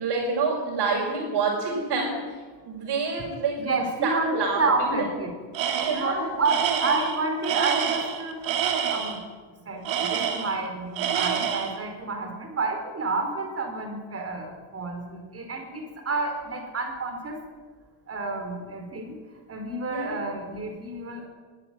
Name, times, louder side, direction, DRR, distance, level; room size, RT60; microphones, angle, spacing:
voice 1, 0.0-2.2 2.7-3.6 4.0-5.0 5.8-6.3 19.9-20.2, right 4 dB, 60° right, -3 dB, 6.8 m, -27 dB
voice 2, 3.6-5.3 5.9-8.5 8.9-9.2 9.6-17.4 18.1-19.1 19.5-21.3, right 3 dB, 30° right, 5 dB, 4.8 m, -29 dB
Tools, 5.5-6.1 6.4-9.2 9.8-10.7 11.0-11.8, right 8 dB, 75° right, 3.4 m, -27 dB
22.0 x 15.5 x 9.4 m, 1.4 s
cardioid pair, 160°, 45 cm